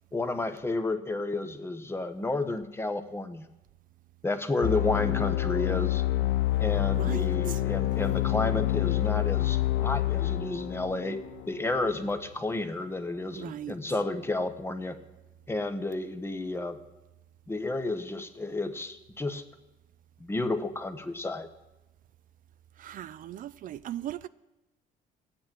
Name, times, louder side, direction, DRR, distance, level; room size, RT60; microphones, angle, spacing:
voice 1, 0.1-3.5 4.2-6.0 6.6-11.2 11.5-15.0 15.5-16.8 17.5-19.4 20.2-21.5, left 2 dB, 15° left, 1.1 m, -31 dB
sound 1, 4.6-12.1, left 15 dB, 85° left, 0.6 m, -27 dB
voice 2, 7.0-7.6 13.4-13.7 22.8-24.3, right 12 dB, 55° right, 0.4 m, -38 dB
14.5 x 8.8 x 7.5 m
cardioid pair, 110°, 17 cm